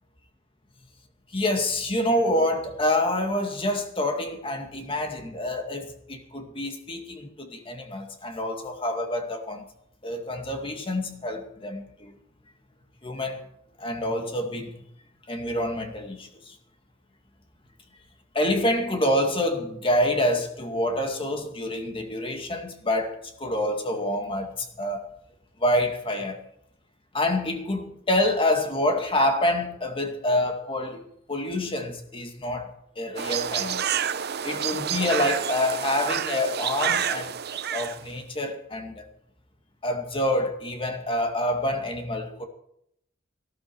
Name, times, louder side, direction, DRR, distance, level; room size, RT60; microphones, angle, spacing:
voice 1, 1.3-9.7 10.0-12.2 13.0-13.4 13.8-14.7 15.3-16.6 18.3-25.0 25.6-26.4 27.1-31.0 31.3-33.9 34.4-37.3 37.7-39.0 39.8-42.5, left 1 dB, 30° left, 2.2 m, -27 dB
sound 1, 33.2-38.0, right 8 dB, 55° right, 0.7 m, -29 dB
18.0 x 12.5 x 4.7 m
head